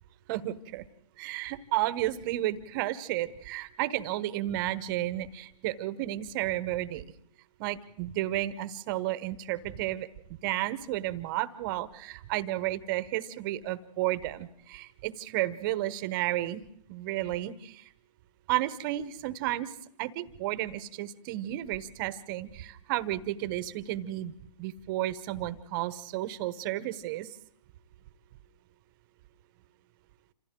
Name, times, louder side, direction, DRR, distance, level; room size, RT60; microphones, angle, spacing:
voice 1, 0.3-0.8 1.2-7.0 7.6-16.6 16.9-17.9 18.5-19.7 20.0-27.3, right 15 dB, 30° right, 16 dB, 1.1 m, -32 dB
27.5 x 27.5 x 3.8 m, 0.69 s
hypercardioid pair, 140°, 21 cm